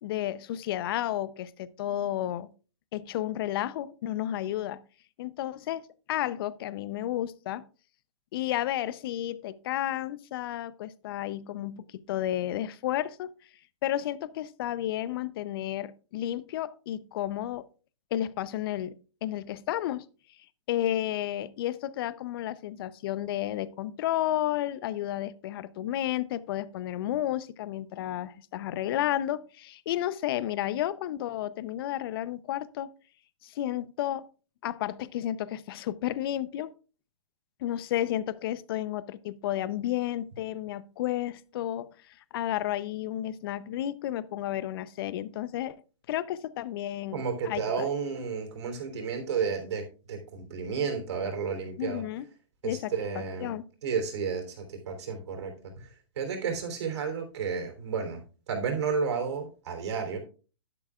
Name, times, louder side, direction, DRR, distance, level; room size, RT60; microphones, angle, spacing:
voice 1, 0.0-2.5 2.9-4.8 5.2-7.6 8.3-13.3 13.8-17.7 18.1-19.0 19.2-20.0 20.7-32.9 33.4-34.3 34.6-36.7 37.6-45.8 46.1-47.9 51.8-52.2 52.6-52.9 53.4-53.7, left 12 dB, 50° left, 0.7 m, -32 dB
voice 2, 47.1-52.0 52.6-53.5 53.8-60.2, right 6 dB, 60° right, 3.4 m, -32 dB
11.0 x 11.0 x 2.4 m
hypercardioid pair, 130°, 16 cm